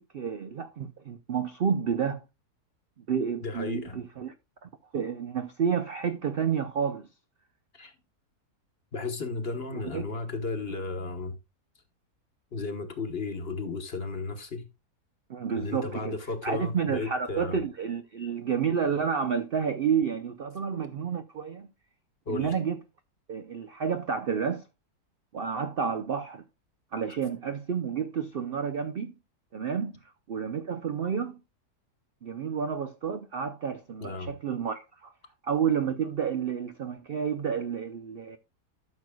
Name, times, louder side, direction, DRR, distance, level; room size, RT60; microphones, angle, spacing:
voice 1, 0.0-2.2 3.1-4.3 4.6-7.1 9.7-10.1 15.3-16.2 16.4-21.7 22.3-22.8 23.3-24.6 25.3-26.4 26.9-29.1 29.5-30.0 30.3-31.4 32.2-35.1 35.4-38.4, right 7 dB, 60° right, 0.6 m, -30 dB
voice 2, 3.4-4.1 7.7-7.9 8.9-11.4 12.5-14.7 15.5-17.6 22.3-22.6 34.0-34.3, left 3 dB, 40° left, 1.2 m, -34 dB
13.0 x 6.4 x 2.3 m
omnidirectional pair, 1.7 m